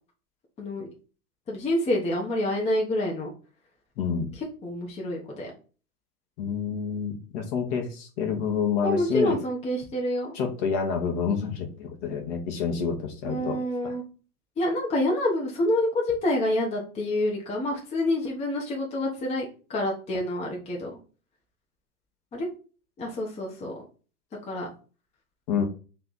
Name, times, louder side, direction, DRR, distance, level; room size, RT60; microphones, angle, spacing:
voice 1, 1.5-3.3 4.4-5.5 8.8-10.3 13.2-14.0 14.6-21.0 22.3-22.5 23.0-23.8 24.4-24.7, left 1 dB, 15° left, -1 dB, 0.9 m, -27 dB
voice 2, 4.0-4.3 6.4-9.4 10.3-13.9 25.5-25.6, left 6 dB, 40° left, 3 dB, 1.1 m, -28 dB
3.3 x 3.3 x 4.0 m, 0.36 s
hypercardioid pair, 125°, 45 cm